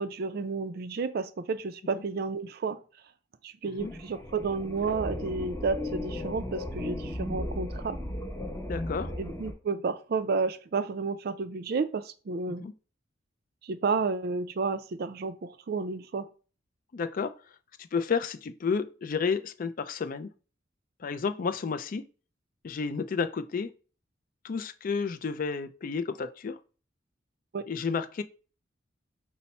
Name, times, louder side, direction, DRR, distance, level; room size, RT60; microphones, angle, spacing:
voice 1, 0.0-2.8 3.4-8.0 9.2-12.7 13.6-16.3 27.5-27.6, right 4 dB, 55° right, 0.4 m, -31 dB
sound 1, 3.8-9.5, left 1 dB, 10° left, 0.8 m, -36 dB
voice 2, 8.7-9.1 12.5-12.7 16.9-17.3 17.8-20.3 21.0-22.1 22.6-23.7 24.4-26.6 27.7-28.2, left 5 dB, 45° left, 0.3 m, -31 dB
5.5 x 2.0 x 4.1 m
head